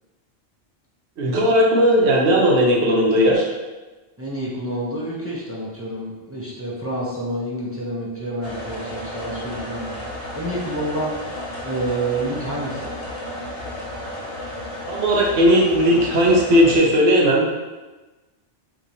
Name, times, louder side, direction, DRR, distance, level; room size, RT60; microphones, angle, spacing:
voice 1, 1.2-3.5 14.9-17.6, equal, 70° right, -2 dB, 1.0 m, -17 dB
voice 2, 4.2-11.2 11.6-12.9, right 1 dB, 20° right, -7 dB, 0.3 m, -28 dB
sound 1, 8.4-16.8, left 1 dB, 60° left, 1.0 m, -33 dB
3.0 x 2.3 x 3.9 m, 1.2 s
omnidirectional pair, 1.2 m